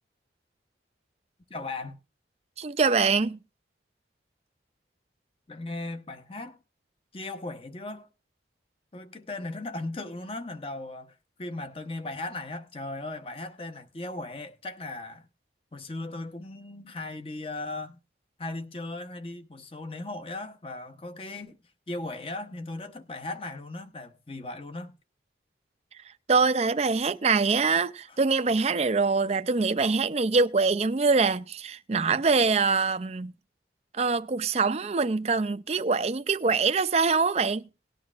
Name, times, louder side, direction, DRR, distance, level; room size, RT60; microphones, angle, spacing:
voice 1, 1.5-2.0 5.5-6.6 7.1-8.1 8.9-15.3 15.7-18.0 18.4-21.6 21.9-24.9, left 2 dB, 30° left, 0.9 m, -37 dB
voice 2, 2.6-3.4 26.3-33.3 33.9-37.6, right 4 dB, 35° right, 0.5 m, -24 dB
18.5 x 10.5 x 2.5 m
head